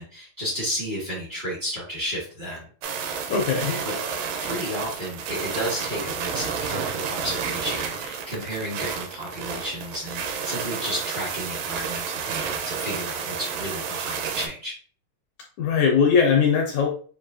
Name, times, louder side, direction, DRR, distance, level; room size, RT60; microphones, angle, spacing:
voice 1, 0.0-2.6 3.8-3.9 4.4-14.7, equal, 50° right, -5 dB, 0.5 m, -32 dB
sound 1, 2.8-14.5, right 6 dB, 80° right, 2.1 m, -31 dB
voice 2, 3.3-3.8 15.6-16.9, left 6 dB, 80° left, 1 dB, 1.7 m, -20 dB
6.7 x 2.7 x 2.6 m, 0.43 s
omnidirectional pair, 4.1 m